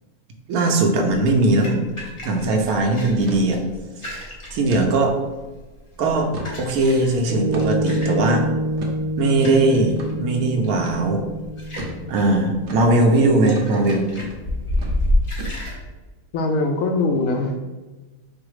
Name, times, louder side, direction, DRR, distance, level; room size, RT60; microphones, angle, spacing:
voice 1, 0.5-1.8 2.2-3.6 4.1-5.2 6.0-6.3 6.6-8.5 9.2-11.2 12.1-14.1, right 2 dB, 80° right, 3 dB, 1.1 m, -19 dB
sound 1, 1.1-15.8, left 1 dB, 30° left, 0.7 m, -31 dB
sound 2, 1.3-1.5 1.8-1.9 2.3-2.6 3.3-3.5 4.0-4.1 4.7-4.9 5.4-5.5 6.1-6.6 7.5-7.9 8.8-9.0 10.0-10.1 10.8-11.0 11.8-12.0 12.7-12.9 13.5-13.7 14.2-14.4 14.7-15.0 15.4-15.8, equal, 60° right, 0.9 m, -35 dB
Piano, 7.3-14.0, right 1 dB, 40° right, 0.3 m, -28 dB
voice 2, 16.3-17.6, left 2 dB, 70° left, 4 dB, 0.9 m, -21 dB
4.8 x 2.0 x 4.7 m, 1.2 s
omnidirectional pair, 1.6 m